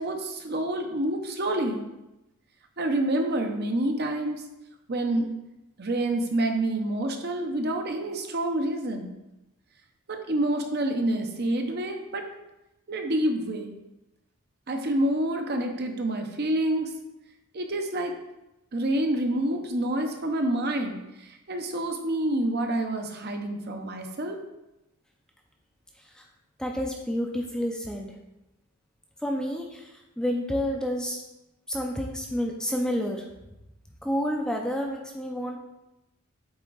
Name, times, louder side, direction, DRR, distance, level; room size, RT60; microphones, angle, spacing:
voice 1, 0.0-1.8 2.8-4.4 4.9-5.3 5.8-9.1 10.1-12.2 12.9-13.7 14.7-16.9 17.5-18.1 18.7-24.4, right 1 dB, 45° right, 4 dB, 0.7 m, -27 dB
voice 2, 26.6-28.2 29.2-31.2 31.7-33.2 34.0-35.6, equal, 5° left, 1 dB, 0.5 m, -29 dB
8.0 x 3.7 x 3.9 m, 0.94 s
head